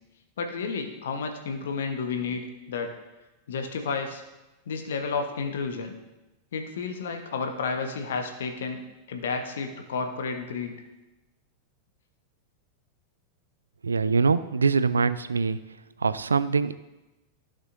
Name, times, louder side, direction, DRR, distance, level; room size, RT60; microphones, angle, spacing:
voice 1, 0.4-2.9 3.5-4.2 4.7-5.9 6.5-8.8 9.1-10.8, left 5 dB, 60° left, 5 dB, 1.2 m, -31 dB
voice 2, 13.8-15.6 16.0-16.7, right 4 dB, 75° right, 15 dB, 0.4 m, -23 dB
15.0 x 6.3 x 2.6 m, 1.0 s
figure-of-eight pair, 90°, 0 cm